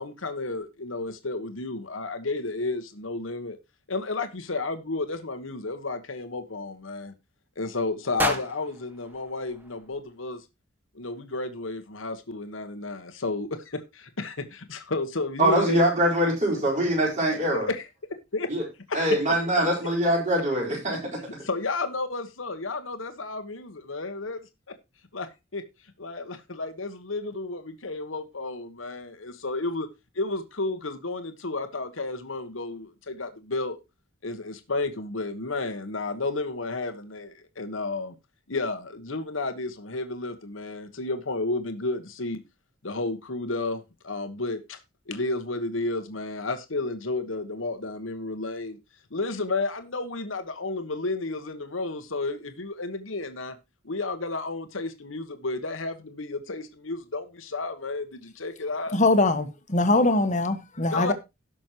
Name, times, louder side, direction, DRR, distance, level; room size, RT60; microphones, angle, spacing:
voice 1, 0.0-3.6 3.9-7.1 7.6-10.4 10.9-15.8 16.5-16.6 17.5-17.8 18.3-18.5 18.9-19.4 20.9-21.0 21.4-24.4 24.7-24.8 25.1-25.6 26.0-29.9 30.1-33.8 34.2-38.2 38.5-42.4 42.8-44.8 45.1-48.8 49.1-53.6 53.8-59.0 60.9-61.1, left 3 dB, 85° left, 1.3 m, -32 dB
sound 1, 8.2-10.3, equal, 10° right, 1.4 m, -33 dB
voice 2, 15.4-17.7 18.5-18.6 18.9-21.0, right 1 dB, 40° right, 4.4 m, -23 dB
voice 3, 58.9-61.1, left 2 dB, 40° left, 1.3 m, -22 dB
17.5 x 6.2 x 3.0 m
head